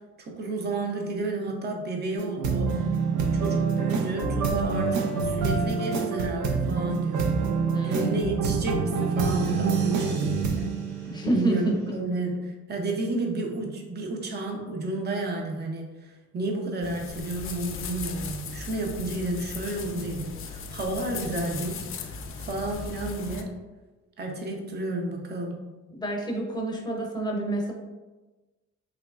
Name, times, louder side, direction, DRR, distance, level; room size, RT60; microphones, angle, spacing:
voice 1, 0.2-2.8 3.3-7.3 7.8-10.7 11.3-23.5 24.2-25.6, right 2 dB, 35° right, 1 dB, 0.6 m, -31 dB
sound 1, 2.2-11.8, right 5 dB, 75° right, 0.6 m, -26 dB
voice 2, 7.7-8.1 11.0-12.0 25.9-27.7, right 2 dB, 15° left, 0 dB, 0.7 m, -28 dB
sound 2, 16.8-23.4, left 5 dB, 45° left, 0.4 m, -37 dB
3.4 x 3.0 x 2.3 m, 1.2 s
cardioid pair, 90°, 30 cm